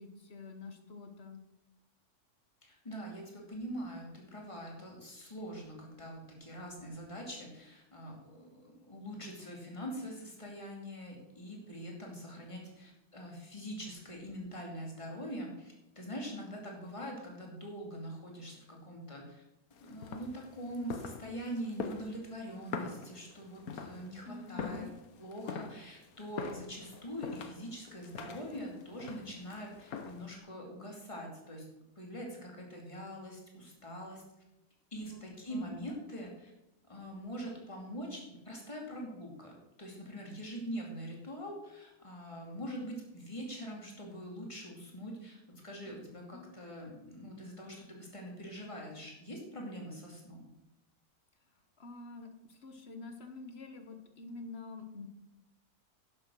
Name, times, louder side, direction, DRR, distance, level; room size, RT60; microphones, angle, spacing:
voice 1, 0.0-1.4 24.2-24.9 35.0-35.6 46.3-46.5 51.8-55.1, left 3 dB, 45° left, 6 dB, 1.4 m, -47 dB
voice 2, 2.6-19.4 19.8-24.9 25.2-31.7 32.0-34.2 34.9-36.5 36.9-50.5, equal, 20° left, -1 dB, 2.6 m, -43 dB
sound 1, 19.7-30.4, left 5 dB, 75° left, 1.4 m, -44 dB
11.0 x 7.5 x 6.1 m, 0.91 s
omnidirectional pair, 1.6 m